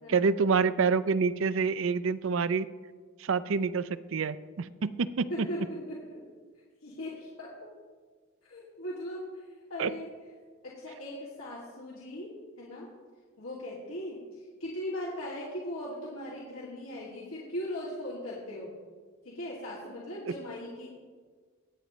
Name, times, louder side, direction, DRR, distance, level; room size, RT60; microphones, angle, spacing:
voice 1, 0.1-2.7 3.2-5.5 9.8-9.9, right 5 dB, 65° right, 15 dB, 0.5 m, -27 dB
voice 2, 5.3-6.2 6.8-7.7 8.4-9.4 9.7-10.1 10.6-12.9 13.4-18.7 19.2-20.9, left 1 dB, 85° left, -6 dB, 2.4 m, -39 dB
22.5 x 9.2 x 3.1 m, 1.5 s
head